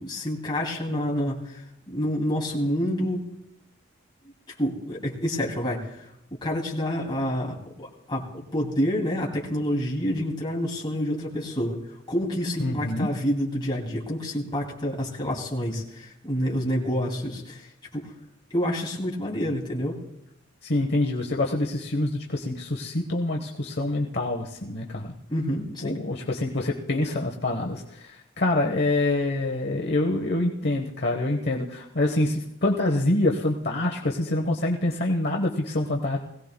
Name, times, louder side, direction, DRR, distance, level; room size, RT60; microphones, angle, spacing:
voice 1, 0.0-1.4 1.9-3.2 4.6-6.0 6.4-11.8 12.1-17.7 17.9-18.1 18.5-20.0 25.3-26.0, equal, 25° left, -3 dB, 2.6 m, -28 dB
voice 2, 12.6-13.1 20.6-25.1 25.8-36.2, left 2 dB, 55° left, 1 dB, 1.0 m, -26 dB
21.5 x 16.5 x 2.2 m, 0.82 s
head